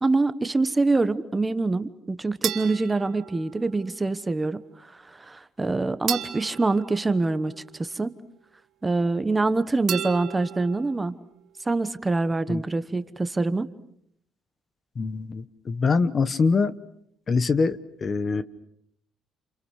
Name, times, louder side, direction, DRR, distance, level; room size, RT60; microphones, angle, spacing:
voice 1, 0.0-7.5 7.8-8.1 8.8-11.1 11.6-13.7, right 3 dB, 15° right, 12 dB, 1.1 m, -25 dB
sound 1, 2.4-3.9 6.1-7.9 9.9-11.0, right 10 dB, 55° right, 2.0 m, -34 dB
voice 2, 15.0-16.7 17.3-18.4, left 4 dB, 30° left, 15 dB, 1.1 m, -24 dB
29.5 x 28.5 x 6.4 m, 0.71 s
cardioid pair, 145°, 0 cm